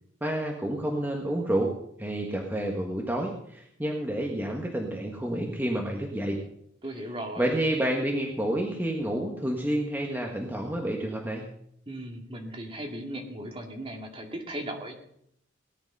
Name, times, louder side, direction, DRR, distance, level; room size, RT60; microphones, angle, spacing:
voice 1, 0.2-1.7 2.0-6.4 7.4-11.4, right 1 dB, 10° right, 0 dB, 1.4 m, -29 dB
voice 2, 6.8-7.5 11.9-14.9, right 1 dB, 30° right, 2 dB, 2.2 m, -37 dB
18.0 x 10.5 x 5.4 m, 0.72 s
head